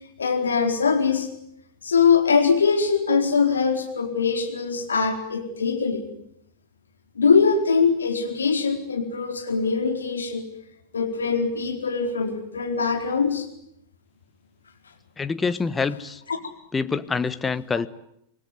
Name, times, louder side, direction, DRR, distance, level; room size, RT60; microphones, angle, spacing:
voice 1, 0.2-1.3 1.8-6.1 7.2-10.5 10.9-13.5 16.3-16.4, left 5 dB, 75° left, 4 dB, 4.5 m, -22 dB
voice 2, 15.2-16.2 16.7-17.9, left 4 dB, 15° left, 13 dB, 1.3 m, -26 dB
26.5 x 20.5 x 9.6 m, 0.75 s
figure-of-eight pair, 90°, 0 cm